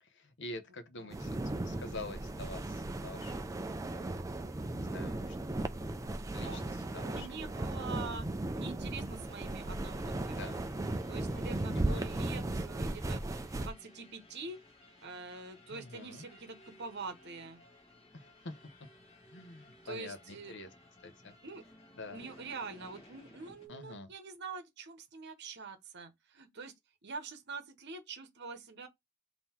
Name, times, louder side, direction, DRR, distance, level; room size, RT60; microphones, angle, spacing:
voice 1, 0.0-1.4 1.6-3.6 3.9-4.1 4.8-5.4 6.3-7.3 10.4-10.6 11.7-12.2 15.7-16.3 18.1-18.6 19.3-20.7 21.0-21.3 21.9-22.2 23.7-24.1, left 2 dB, 55° left, 0.8 m, -46 dB
sound 1, 1.1-13.7, right 2 dB, 15° right, 0.4 m, -36 dB
voice 2, 5.7-6.6 7.0-8.3 8.5-10.6 11.1-13.2 13.5-14.6 15.0-17.6 19.8-20.5 21.4-21.6 22.1-26.7 27.0-28.9, right 4 dB, 50° right, 0.9 m, -45 dB
sound 2, 9.0-23.7, left 1 dB, 30° left, 1.4 m, -59 dB
3.8 x 2.8 x 4.3 m
head